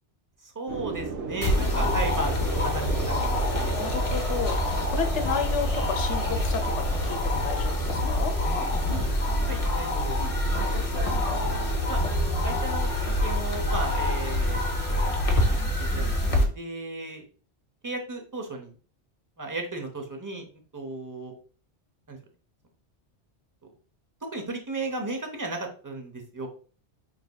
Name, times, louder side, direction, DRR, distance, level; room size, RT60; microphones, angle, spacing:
voice 1, 0.4-3.8 9.2-10.2 11.1-12.0 12.4-17.2 17.8-18.7 19.4-20.5 20.7-21.3 22.1-22.2 24.2-26.5, right 2 dB, 20° right, 3 dB, 0.6 m, -35 dB
sound 1, 0.7-13.4, right 4 dB, 80° right, 1.0 m, -37 dB
sound 2, 1.4-16.4, left 1 dB, 35° left, 0.7 m, -26 dB
voice 2, 1.6-2.0 3.7-8.4, left 6 dB, 90° left, 5 dB, 0.9 m, -32 dB
4.9 x 3.3 x 2.2 m, 0.40 s
omnidirectional pair, 1.2 m